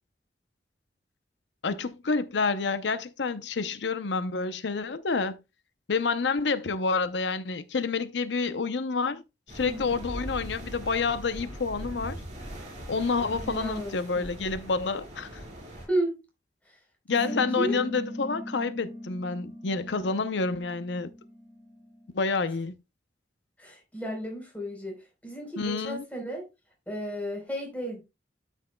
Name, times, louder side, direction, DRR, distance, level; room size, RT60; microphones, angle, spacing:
voice 1, 1.6-5.4 5.9-9.2 9.5-12.2 12.9-15.4 17.1-21.1 22.1-22.7 25.6-26.0, left 4 dB, 80° left, 0.7 m, -28 dB
sound 1, 9.5-15.9, equal, 40° right, 3.9 m, -41 dB
voice 2, 9.6-10.0 13.2-14.3 15.9-16.2 17.1-17.8 23.6-25.0 25.2-26.4 26.9-28.0, right 1 dB, 10° left, 3.8 m, -33 dB
sound 2, 17.1-22.1, left 1 dB, 35° left, 2.2 m, -39 dB
12.5 x 6.2 x 2.2 m
head